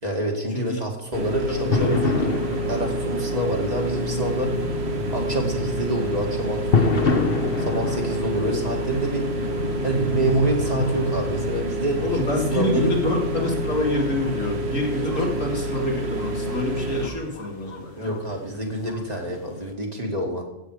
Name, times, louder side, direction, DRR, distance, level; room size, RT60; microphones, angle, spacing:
voice 1, 0.0-4.5 5.1-7.2 7.6-9.2 9.8-13.0 15.2-15.3 18.0-20.4, right 1 dB, 30° right, 0 dB, 2.5 m, -27 dB
sound 1, 1.1-17.1, right 1 dB, 55° right, 1.5 m, -28 dB
voice 2, 1.5-2.0 12.0-18.1, left 2 dB, 85° left, 0 dB, 2.9 m, -26 dB
sound 2, 1.7-19.7, left 4 dB, 50° left, 1.3 m, -30 dB
15.5 x 8.2 x 5.0 m, 0.97 s
omnidirectional pair, 1.3 m